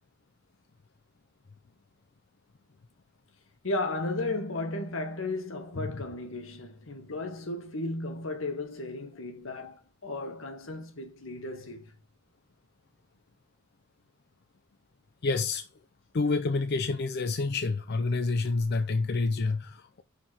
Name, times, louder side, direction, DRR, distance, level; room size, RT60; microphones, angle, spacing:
voice 1, 3.6-11.9, left 2 dB, 85° left, 1.5 m, -34 dB
voice 2, 15.2-15.7 16.1-20.0, left 3 dB, 55° left, 0.5 m, -28 dB
5.8 x 4.3 x 6.2 m
head